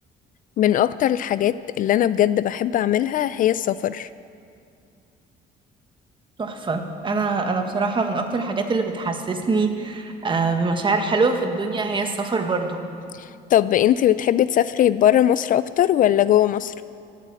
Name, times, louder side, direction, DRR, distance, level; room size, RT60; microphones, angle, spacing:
voice 1, 0.6-4.1 13.1-16.7, left 11 dB, 55° left, 15 dB, 0.4 m, -20 dB
voice 2, 6.4-12.8, right 3 dB, 30° right, 5 dB, 1.6 m, -24 dB
16.5 x 8.4 x 8.4 m, 2.4 s
cardioid pair, 110°, 17 cm